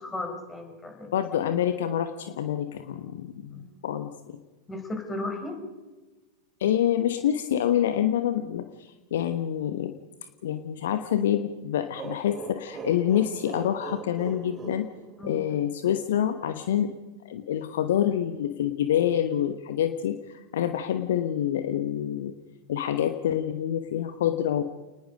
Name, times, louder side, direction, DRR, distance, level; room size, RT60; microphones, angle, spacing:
voice 1, 0.0-1.1 3.5-3.6 4.7-5.6 15.2-15.4, left 2 dB, 15° left, 5 dB, 4.9 m, -35 dB
voice 2, 1.1-4.4 6.6-9.9 10.4-14.9 15.2-16.9 17.3-22.3 22.7-24.6, left 10 dB, 60° left, 9 dB, 1.0 m, -27 dB
sound 1, 12.0-15.7, right 4 dB, 25° right, 1.7 m, -40 dB
30.0 x 19.5 x 5.2 m, 1.2 s
figure-of-eight pair, 90°, 0 cm